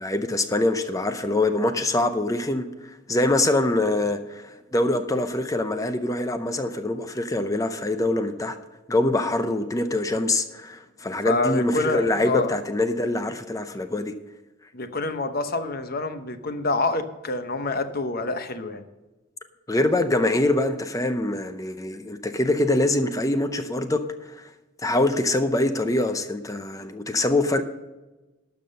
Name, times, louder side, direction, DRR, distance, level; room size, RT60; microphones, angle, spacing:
voice 1, 0.0-8.6 8.9-14.1 19.7-24.5 24.8-27.6, left 2 dB, 15° left, 9 dB, 0.6 m, -24 dB
voice 2, 11.2-12.5 14.7-18.8, left 2 dB, 50° left, 9 dB, 0.9 m, -27 dB
12.5 x 6.0 x 6.4 m, 1.1 s
head